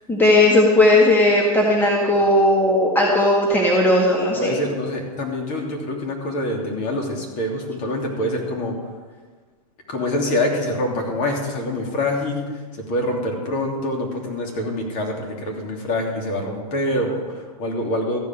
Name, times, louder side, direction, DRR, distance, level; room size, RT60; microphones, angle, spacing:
voice 1, 0.1-4.6, left 1 dB, 10° left, -2 dB, 2.0 m, -16 dB
voice 2, 4.3-8.7 9.9-18.2, left 1 dB, 40° left, 1 dB, 3.1 m, -25 dB
14.5 x 5.5 x 9.2 m, 1.4 s
hypercardioid pair, 115°, 19 cm